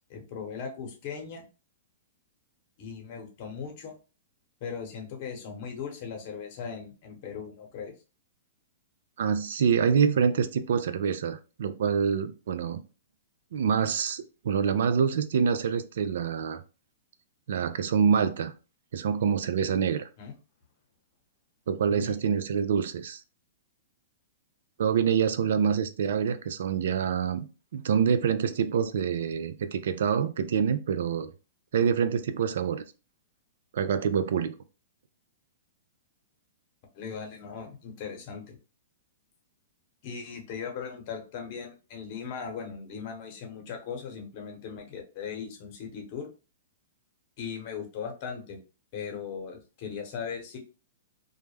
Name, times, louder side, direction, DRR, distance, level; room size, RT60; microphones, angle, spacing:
voice 1, 0.1-1.4 2.8-4.0 4.6-7.9 20.2-20.3 21.9-22.2 36.9-38.6 40.0-46.3 47.4-48.6 48.9-50.6, left 6 dB, 50° left, 0.9 m, -38 dB
voice 2, 9.2-12.8 13.5-16.6 17.5-18.5 18.9-20.1 21.7-23.2 24.8-27.5 27.7-31.3 31.7-32.8 33.7-34.5, right 7 dB, 70° right, 0.3 m, -26 dB
2.2 x 2.0 x 3.2 m
hypercardioid pair, 125°, 0 cm